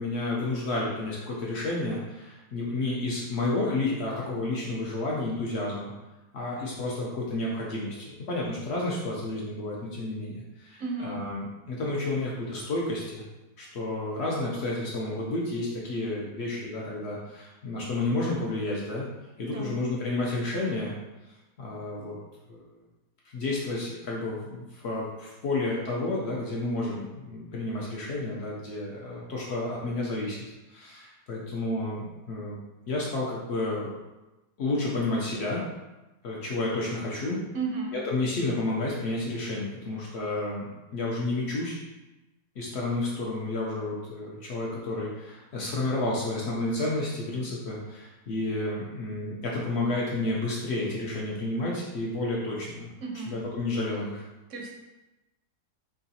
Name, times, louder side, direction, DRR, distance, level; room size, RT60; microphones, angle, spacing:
voice 1, 0.0-5.9 6.3-13.2 13.6-19.1 19.4-20.9 21.6-22.2 22.5-22.6 23.3-30.4 30.7-32.6 32.9-33.9 34.6-35.6 36.2-37.4 37.9-41.8 42.6-52.9 53.3-54.2, left 2 dB, 70° left, -4 dB, 0.6 m, -31 dB
voice 2, 10.8-11.2 19.4-19.8 37.5-38.0 53.0-53.4 54.5-54.7, right 4 dB, 70° right, 0 dB, 0.7 m, -33 dB
4.5 x 2.4 x 2.7 m, 1.1 s
omnidirectional pair, 1.8 m